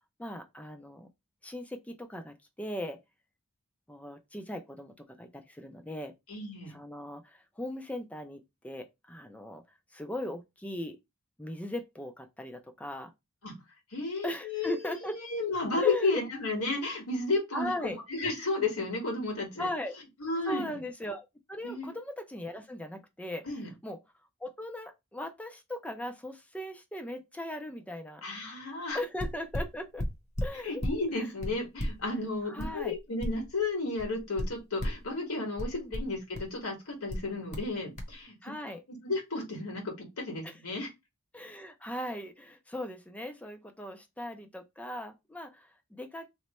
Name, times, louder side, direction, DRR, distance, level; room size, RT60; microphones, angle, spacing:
voice 1, 0.2-1.1 1.4-3.0 3.9-6.1 6.7-9.6 9.9-11.0 11.4-13.1 14.2-15.2 15.8-16.2 17.5-18.0 19.6-19.9 20.5-23.5 23.8-24.0 24.4-28.2 28.9-30.1 30.4-30.8 32.4-33.0 35.7-35.9 38.4-38.8 40.4-40.6 41.3-46.3, left 1 dB, 5° left, 0.4 m, -38 dB
voice 2, 6.3-6.7 13.4-13.5 13.9-14.8 15.1-19.7 20.2-20.7 21.6-21.9 23.5-23.7 28.2-29.0 30.6-38.3 39.0-40.9, left 3 dB, 80° left, 1.6 m, -33 dB
sound 1, 28.9-29.0 29.2-31.0 31.4-33.7 34.0-35.1 35.6-36.6 37.1-37.7 38.0-38.1, equal, 35° left, 0.9 m, -35 dB
3.0 x 2.2 x 4.1 m
head